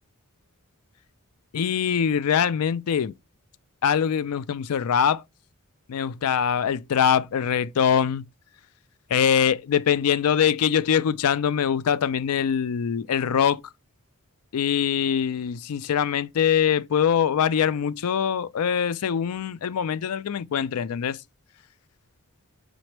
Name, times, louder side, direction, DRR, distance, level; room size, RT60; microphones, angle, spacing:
voice 1, 1.5-3.1 3.8-5.2 5.9-8.2 9.1-13.6 14.5-21.2, left 8 dB, 85° left, 0.4 m, -23 dB
5.1 x 3.0 x 3.2 m
head